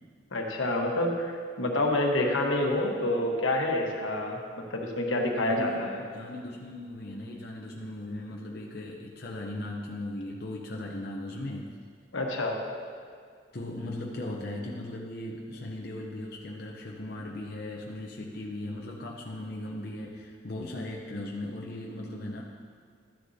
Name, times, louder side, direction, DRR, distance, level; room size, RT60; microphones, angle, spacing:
voice 1, 0.3-6.0 12.1-12.6, left 1 dB, 85° left, 0 dB, 1.3 m, -28 dB
voice 2, 5.5-5.8 6.1-11.7 13.5-22.4, left 1 dB, 50° left, -2 dB, 0.7 m, -38 dB
13.5 x 9.5 x 2.8 m, 2.1 s
head